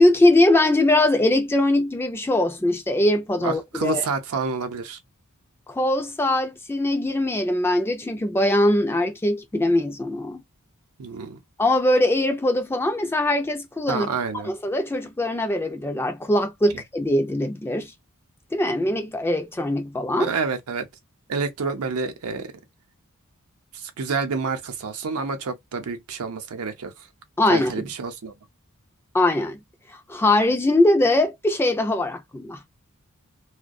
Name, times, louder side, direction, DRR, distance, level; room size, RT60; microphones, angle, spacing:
voice 1, 0.0-4.0 5.7-10.4 11.6-14.1 14.4-17.9 18.5-20.3 27.4-27.7 29.1-29.6 30.1-32.6, left 1 dB, 10° left, 0.4 m, -21 dB
voice 2, 3.4-5.0 11.0-11.4 13.9-14.5 20.2-20.9 21.3-22.5 23.7-26.9 27.5-28.3, right 4 dB, 75° right, 0.6 m, -28 dB
2.3 x 2.1 x 2.5 m
head